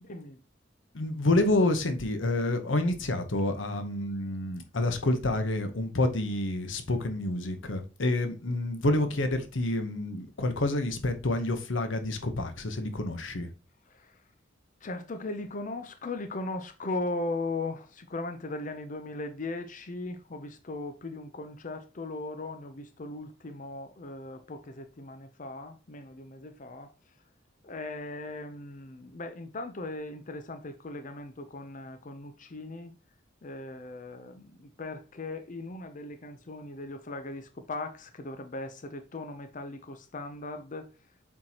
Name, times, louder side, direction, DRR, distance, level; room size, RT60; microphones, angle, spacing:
voice 1, 0.0-0.4 13.9-14.2 14.8-26.9 27.6-32.9 33.4-40.9, left 2 dB, 45° left, 0.6 m, -38 dB
voice 2, 0.9-13.5, left 2 dB, 85° left, 1.0 m, -28 dB
7.5 x 4.5 x 2.9 m
head